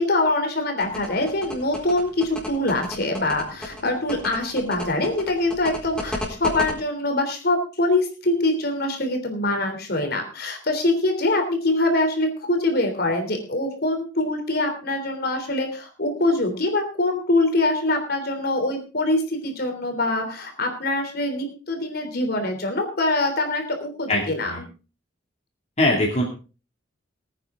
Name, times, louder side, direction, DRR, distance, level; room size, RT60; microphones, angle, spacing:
voice 1, 0.0-24.6, left 2 dB, 55° left, 4 dB, 3.4 m, -24 dB
sound 1, 0.8-6.7, left 1 dB, 5° left, 4.1 m, -32 dB
voice 2, 24.1-24.6 25.8-26.2, left 1 dB, 35° left, -2 dB, 2.6 m, -22 dB
20.5 x 9.2 x 3.8 m, 0.34 s
head